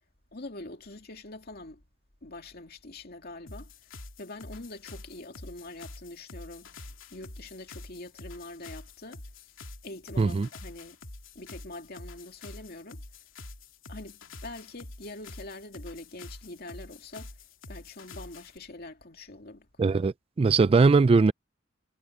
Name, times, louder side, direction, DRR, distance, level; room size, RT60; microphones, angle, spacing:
voice 1, 0.3-1.8 2.2-3.7 4.2-9.2 9.8-11.0 11.3-13.0 13.9-17.3 17.7-19.7, left 2 dB, 55° left, 2.5 m, -44 dB
sound 1, 3.5-18.6, left 2 dB, 85° left, 2.8 m, -46 dB
voice 2, 10.2-10.5 19.8-21.3, right 4 dB, 30° right, 0.3 m, -21 dB
head